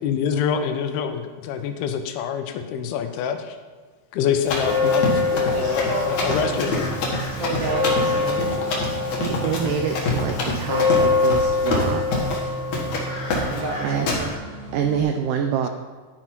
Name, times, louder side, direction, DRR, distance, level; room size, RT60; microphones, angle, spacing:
voice 1, 0.0-3.6 4.1-5.1 5.3-7.0, left 8 dB, 85° left, 7 dB, 2.7 m, -26 dB
Run, 4.4-12.5 12.7-13.1 13.3-13.7 14.1-14.2, left 2 dB, 55° left, 2.6 m, -27 dB
sound 1, 4.6-15.0, left 3 dB, 15° left, 1.9 m, -25 dB
voice 2, 5.5-6.7 7.4-8.6 13.5-14.3, right 2 dB, 60° right, -4 dB, 1.6 m, -30 dB
voice 3, 9.2-12.2 13.8-14.1 14.7-15.7, right 7 dB, 85° right, 5 dB, 1.8 m, -26 dB
11.5 x 5.9 x 4.5 m, 1.5 s
omnidirectional pair, 4.4 m